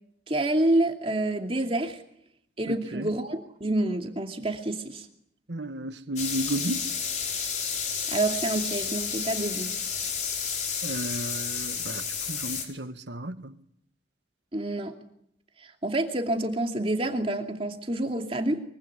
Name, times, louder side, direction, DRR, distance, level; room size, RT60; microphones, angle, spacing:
voice 1, 0.3-2.0 2.6-5.1 8.1-9.7 14.5-14.9 15.8-18.6, right 1 dB, 30° right, 2.6 m, -28 dB
voice 2, 2.7-3.1 5.5-6.9 10.8-13.6, right 1 dB, 75° right, 1.7 m, -33 dB
sound 1, 6.2-12.6, left 6 dB, 40° left, 5.1 m, -31 dB
24.0 x 24.0 x 9.7 m
head